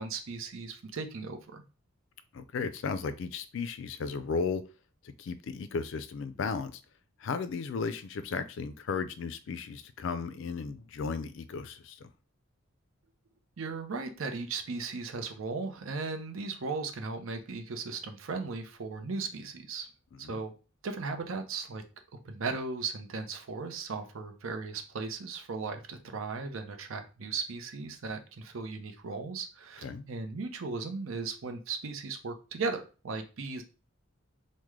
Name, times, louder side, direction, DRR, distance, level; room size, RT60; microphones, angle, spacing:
voice 1, 0.0-1.6 13.6-19.9 20.2-20.5 20.8-21.8 22.2-33.6, right 4 dB, 75° right, 0.6 m, -37 dB
voice 2, 2.3-4.6 5.2-6.8 7.2-12.1 20.2-20.4 29.8-30.1, left 5 dB, 60° left, 0.3 m, -35 dB
3.1 x 2.1 x 3.5 m
head